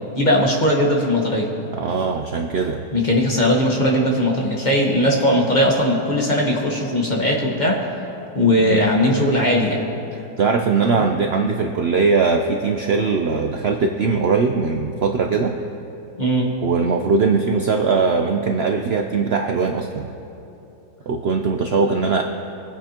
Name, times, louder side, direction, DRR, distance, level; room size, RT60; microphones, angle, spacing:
voice 1, 0.1-1.5 2.9-7.9 8.3-9.8 10.9-11.1 16.2-16.5, left 1 dB, 30° left, -1 dB, 1.3 m, -19 dB
voice 2, 1.7-2.8 8.6-8.8 10.4-15.5 16.6-20.1 21.1-22.2, right 4 dB, 80° right, 4 dB, 0.5 m, -20 dB
23.0 x 8.6 x 2.9 m, 2.8 s
omnidirectional pair, 1.8 m